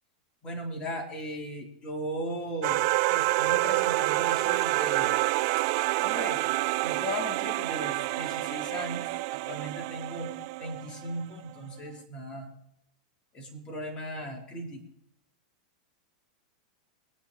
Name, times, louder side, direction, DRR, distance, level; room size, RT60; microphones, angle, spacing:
voice 1, 0.4-5.2 6.0-6.4 6.8-10.3 10.6-12.5 13.3-14.8, equal, 25° left, 1 dB, 4.0 m, -37 dB
sound 1, 2.6-11.2, right 21 dB, 55° right, 0.4 m, -28 dB
22.5 x 9.2 x 4.3 m, 0.81 s
hypercardioid pair, 115°, 4 cm